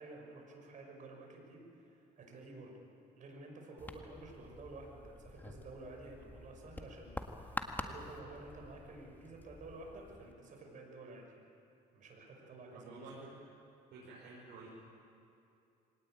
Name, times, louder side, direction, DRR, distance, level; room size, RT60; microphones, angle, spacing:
voice 1, 0.0-2.8 3.2-11.3 11.9-13.2, right 2 dB, 50° right, 1 dB, 6.0 m, -51 dB
sound 1, 3.8-10.3, left 2 dB, 10° left, 1.8 m, -47 dB
voice 2, 12.7-13.3 13.9-14.7, right 3 dB, 80° right, -5 dB, 5.4 m, -51 dB
24.0 x 19.0 x 9.1 m, 2.7 s
cardioid pair, 110°, 17 cm